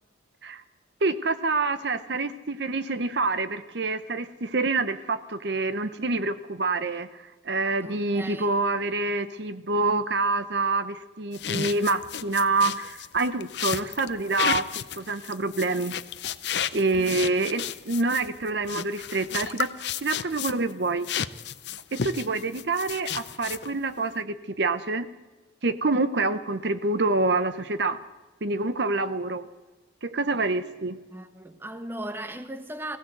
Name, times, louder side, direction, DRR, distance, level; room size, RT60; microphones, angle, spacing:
voice 1, 1.0-15.9 16.7-19.7 20.0-21.1 21.9-25.1 25.6-28.0 28.4-29.5 30.0-31.0, right 3 dB, 60° right, 0.8 m, -27 dB
voice 2, 7.8-8.5 17.0-17.1 31.1-33.0, right 1 dB, 10° right, 1.1 m, -37 dB
sound 1, 11.3-20.7 21.0-23.8, left 8 dB, 60° left, 0.7 m, -32 dB
20.5 x 16.5 x 8.0 m
head